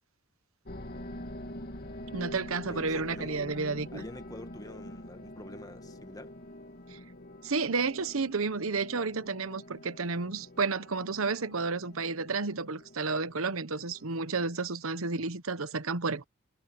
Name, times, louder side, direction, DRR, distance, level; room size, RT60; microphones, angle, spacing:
sound 1, 0.6-14.7, left 1 dB, 50° left, 2.2 m, -46 dB
voice 1, 2.1-4.0 6.9-7.0 7.4-16.2, right 4 dB, 90° right, 1.0 m, -31 dB
voice 2, 2.7-3.5 3.9-6.3, left 1 dB, 20° left, 1.7 m, -46 dB
head